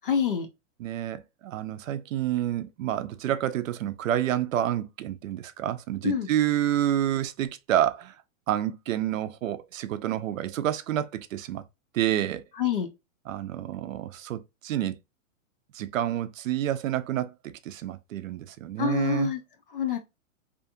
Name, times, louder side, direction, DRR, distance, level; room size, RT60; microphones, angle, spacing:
voice 1, 0.1-0.5 6.0-6.3 12.6-12.9 18.8-19.4 19.7-20.0, left 8 dB, 45° left, 0.4 m, -26 dB
voice 2, 0.8-8.2 8.5-11.6 11.9-12.4 13.3-15.0 15.7-17.3 17.6-19.3, right 12 dB, 75° right, 0.5 m, -28 dB
2.5 x 2.4 x 2.5 m
hypercardioid pair, 180°, 40 cm